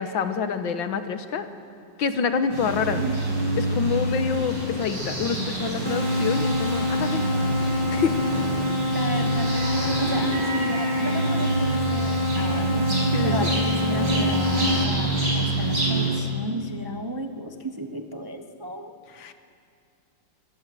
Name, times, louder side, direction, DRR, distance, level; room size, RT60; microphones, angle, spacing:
voice 1, 0.0-1.5 2.0-3.0 3.6-7.3 7.6-8.2 13.1-13.6 19.2-19.3, left 6 dB, 85° left, 9 dB, 1.9 m, -27 dB
sound 1, 2.5-16.1, right 1 dB, 70° right, 6.3 m, -26 dB
voice 2, 2.8-3.3 8.9-12.9 13.2-18.9, equal, 20° right, 5 dB, 0.6 m, -33 dB
sound 2, 5.8-14.8, left 1 dB, 15° left, 2.2 m, -27 dB
24.5 x 18.0 x 7.7 m, 2.5 s
omnidirectional pair, 2.1 m